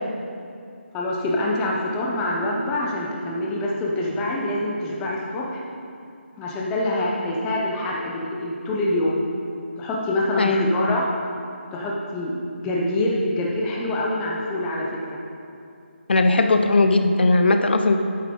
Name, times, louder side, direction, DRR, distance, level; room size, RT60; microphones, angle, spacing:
voice 1, 0.9-5.6 6.4-9.2 9.8-11.0 11.7-12.4 12.6-15.2, left 1 dB, 10° left, -3 dB, 0.6 m, -25 dB
voice 2, 10.4-11.0 16.1-18.0, left 2 dB, 55° left, 7 dB, 0.5 m, -18 dB
8.5 x 7.3 x 3.7 m, 2.4 s
figure-of-eight pair, 165°, 7 cm